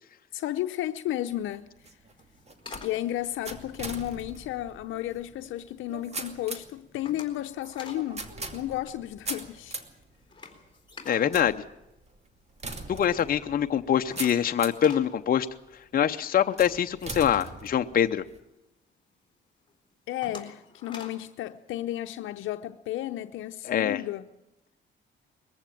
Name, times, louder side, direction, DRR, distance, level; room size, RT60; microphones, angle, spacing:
voice 1, 0.3-1.7 2.8-9.8 20.1-24.2, left 13 dB, 85° left, 0.8 m, -33 dB
sound 1, 1.3-14.9 15.5-16.0 16.6-18.4, right 3 dB, 35° right, 2.5 m, -42 dB
sound 2, 2.1-4.6 5.1-5.6 6.0-6.3 6.6-8.1 8.4-8.5 8.8-12.5 12.9-13.0 13.3-13.4 13.6-18.7 19.1-19.2 19.7-21.3, left 4 dB, 25° left, 3.9 m, -47 dB
voice 2, 11.1-11.5 12.9-15.5 15.9-18.2 23.6-24.0, left 9 dB, 50° left, 0.8 m, -24 dB
21.5 x 14.5 x 9.2 m
cardioid pair, 90°, 20 cm